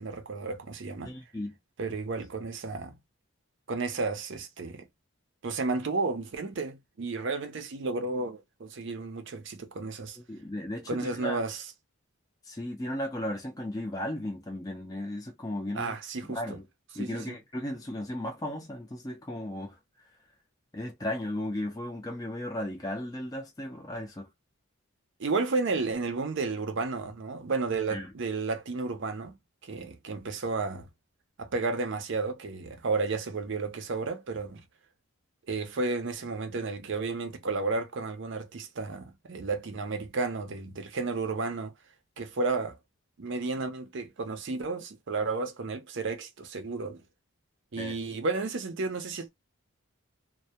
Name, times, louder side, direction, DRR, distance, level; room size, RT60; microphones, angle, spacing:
voice 1, 0.0-1.1 1.8-2.9 3.7-4.9 5.4-10.2 10.9-11.6 15.7-16.6 16.9-17.4 25.2-29.4 29.6-30.9 31.4-34.6 35.5-41.7 42.2-42.8 43.2-47.0 47.7-49.3, right 3 dB, 55° right, 0.5 m, -32 dB
voice 2, 1.0-1.5 10.3-11.4 12.4-16.0 16.3-16.6 16.9-19.8 20.7-24.3 27.9-28.1 47.8-48.0, left 1 dB, 15° left, 0.4 m, -35 dB
2.1 x 2.1 x 2.8 m
head